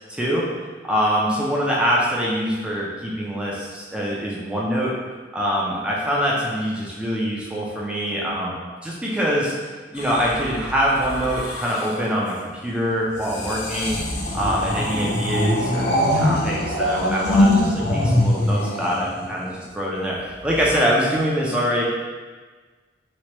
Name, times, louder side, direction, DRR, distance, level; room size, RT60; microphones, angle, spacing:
voice 1, 0.1-0.4 0.8-4.9 5.3-8.6 8.8-9.5 9.9-14.0 14.3-21.8, equal, 5° right, -5 dB, 0.3 m, -24 dB
sound 1, 10.0-12.1 13.1-19.6 20.5-20.8, left 1 dB, 70° left, 0.4 m, -23 dB
3.0 x 2.1 x 2.8 m, 1.4 s
head